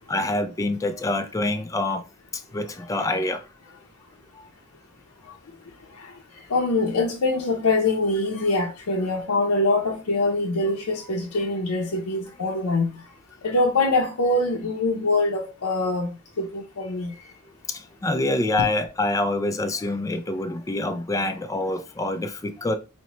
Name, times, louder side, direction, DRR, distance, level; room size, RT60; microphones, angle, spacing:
voice 1, 0.1-2.0 2.5-3.4 18.0-22.8, left 2 dB, 15° left, 0.3 m, -26 dB
voice 2, 6.5-13.0 13.4-17.1 18.6-18.7, left 2 dB, 75° left, 0.6 m, -24 dB
5.0 x 2.1 x 2.9 m
head